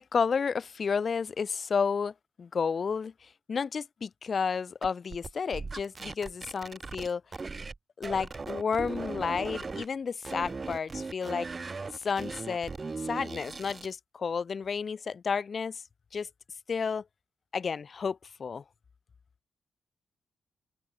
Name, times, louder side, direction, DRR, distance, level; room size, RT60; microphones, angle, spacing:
voice 1, 0.0-7.2 8.0-11.5 11.9-12.7 13.0-15.8 16.1-16.3 16.7-17.0 17.5-18.6, left 5 dB, 45° left, 1.9 m, -31 dB
sound 1, 4.8-7.8 8.0-9.9 10.2-13.9, right 4 dB, 30° right, 0.6 m, -38 dB
cardioid pair, 110°, 0 cm